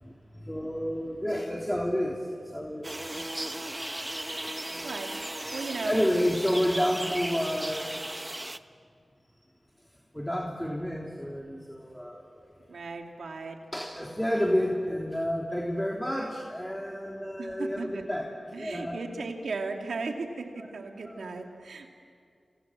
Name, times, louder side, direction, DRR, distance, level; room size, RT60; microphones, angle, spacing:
voice 1, 0.0-3.4 4.7-4.9 5.8-8.1 10.1-12.3 13.7-18.3 18.6-19.0 21.0-21.3, equal, 10° left, -1 dB, 3.4 m, -30 dB
sound 1, 2.8-8.6, right 1 dB, 20° right, 1.1 m, -36 dB
voice 2, 4.4-6.1 12.7-13.6 17.4-18.0 18.5-21.9, right 4 dB, 90° right, 3 dB, 2.7 m, -37 dB
28.5 x 27.5 x 7.6 m, 2.3 s
cardioid pair, 45°, 0 cm